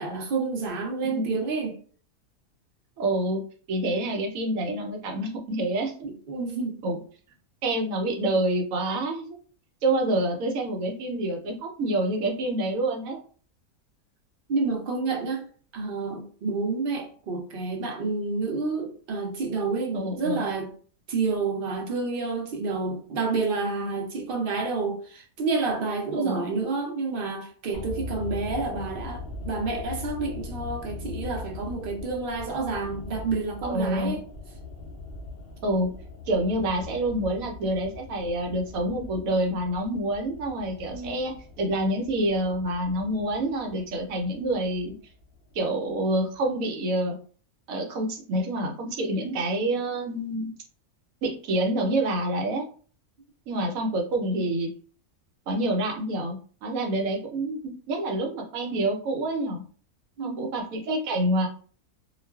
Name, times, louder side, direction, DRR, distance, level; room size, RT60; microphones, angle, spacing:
voice 1, 0.0-1.8 6.0-6.8 14.5-15.4 15.7-20.7 21.1-34.3 40.9-41.3 60.2-60.5, right 4 dB, 55° right, 0.6 m, -29 dB
voice 2, 1.0-1.4 3.0-3.4 3.7-5.9 6.8-7.0 7.6-9.4 9.8-13.2 19.9-20.4 26.1-26.4 33.6-34.2 35.6-35.9 36.3-44.9 45.5-47.2 47.7-50.5 51.2-52.7 53.5-54.7 55.5-59.6 60.2-61.5, right 1 dB, 75° right, 1.0 m, -27 dB
sound 1, 27.7-45.9 46.2-46.3, left 3 dB, 70° left, 0.5 m, -41 dB
2.4 x 2.3 x 2.2 m
omnidirectional pair, 1.5 m